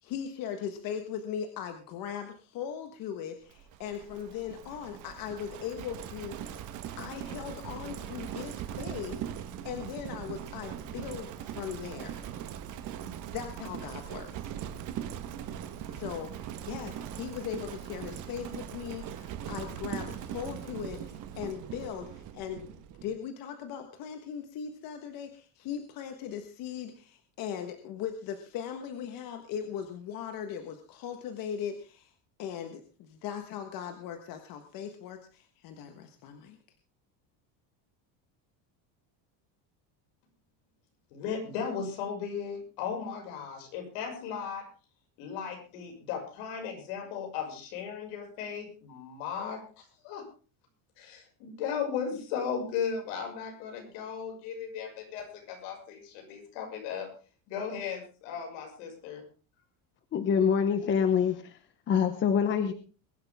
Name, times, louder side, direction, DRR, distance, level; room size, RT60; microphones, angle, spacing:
voice 1, 0.0-6.7 7.0-12.3 13.0-14.5 15.8-22.8 23.0-32.1 32.4-36.6, left 8 dB, 45° left, 6 dB, 1.5 m, -39 dB
Livestock farm animals working animals, 3.5-23.2, right 10 dB, 40° right, 1.4 m, -40 dB
voice 2, 41.1-44.6 45.2-50.2 51.0-57.1 57.5-59.2, left 7 dB, 70° left, 3 dB, 6.3 m, -36 dB
voice 3, 60.1-61.4 61.9-62.7, left 7 dB, 25° left, 9 dB, 0.9 m, -25 dB
22.0 x 11.5 x 3.6 m, 0.36 s
cardioid pair, 180°, 49 cm